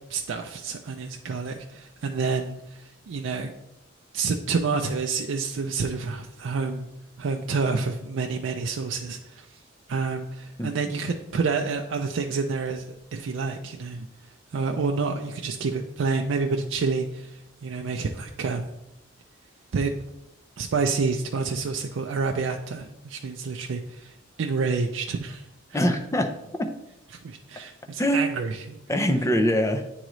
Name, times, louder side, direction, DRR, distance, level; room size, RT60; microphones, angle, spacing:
voice 1, 0.1-3.5 4.1-6.9 7.2-9.5 9.9-12.9 13.1-14.1 14.5-18.7 19.7-19.9 20.6-25.4 25.7-25.8 27.2-28.8, right 4 dB, 65° right, 3 dB, 0.4 m, -28 dB
voice 2, 25.7-26.3 26.6-26.7 28.0-28.2 28.9-29.8, equal, 15° left, 5 dB, 0.5 m, -23 dB
9.0 x 3.8 x 3.1 m, 0.88 s
head